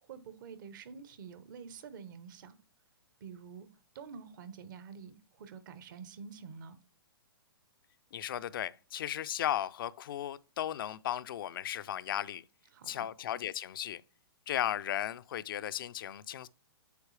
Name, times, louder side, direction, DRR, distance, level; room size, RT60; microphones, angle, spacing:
voice 1, 0.0-2.6 3.2-3.7 3.9-6.8 12.7-13.1, right 6 dB, 55° right, 1.1 m, -48 dB
voice 2, 8.1-12.4 12.9-14.0 14.5-16.5, left 11 dB, 60° left, 0.5 m, -35 dB
8.2 x 4.7 x 3.2 m
hypercardioid pair, 135°, 13 cm